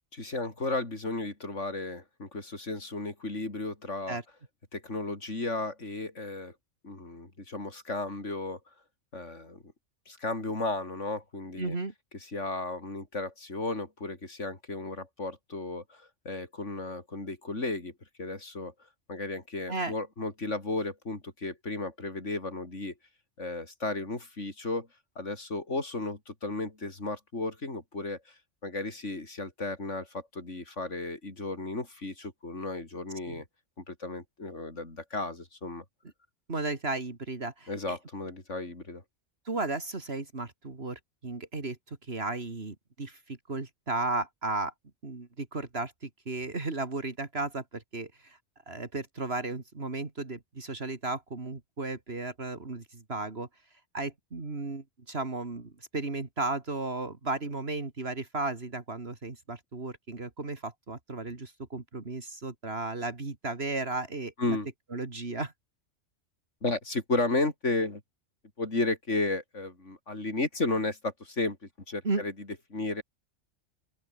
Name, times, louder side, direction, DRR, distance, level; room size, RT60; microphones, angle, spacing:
voice 1, 0.1-4.2 4.7-6.5 6.8-8.6 9.1-9.6 10.1-11.8 12.3-17.9 18.2-18.7 19.1-22.9 23.4-24.9 25.2-33.4 33.8-35.8 37.7-39.0 64.4-64.7 66.6-68.0 68.6-71.6 71.9-73.0, left 2 dB, 80° left, 4.5 m, -34 dB
voice 2, 11.6-11.9 19.7-19.9 33.3-33.4 36.5-38.0 39.5-44.7 45.0-48.4 48.7-53.5 53.9-64.6 64.9-65.5 72.0-72.2, right 3 dB, 55° right, 2.8 m, -34 dB
open air
omnidirectional pair, 1.2 m